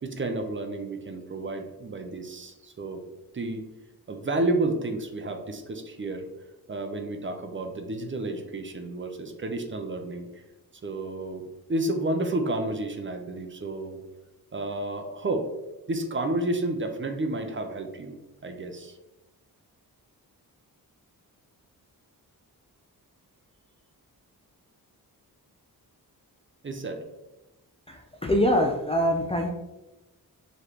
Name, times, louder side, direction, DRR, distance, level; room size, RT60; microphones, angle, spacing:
voice 1, 0.0-3.0 3.3-3.6 4.1-6.3 6.7-10.3 10.8-11.4 11.7-14.0 14.5-15.5 15.9-18.1 18.4-18.9 26.6-27.0, right 2 dB, 30° right, 5 dB, 0.6 m, -31 dB
voice 2, 27.9-29.5, equal, 15° left, 2 dB, 0.4 m, -24 dB
4.8 x 3.2 x 2.9 m, 1.0 s
wide cardioid pair, 95°, 38 cm